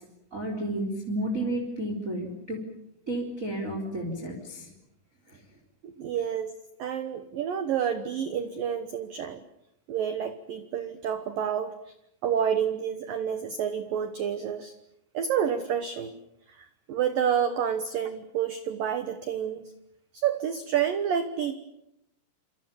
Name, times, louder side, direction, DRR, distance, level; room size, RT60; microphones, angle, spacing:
voice 1, 0.3-2.6 3.1-4.7 5.3-5.4, right 1 dB, 15° right, 2 dB, 3.9 m, -32 dB
voice 2, 6.0-6.5 6.8-9.4 9.9-11.7 12.2-14.7 15.1-16.2 16.6-19.7 20.1-21.6, right 8 dB, 80° right, 10 dB, 2.0 m, -29 dB
28.5 x 27.0 x 7.2 m, 0.83 s
omnidirectional pair, 5.9 m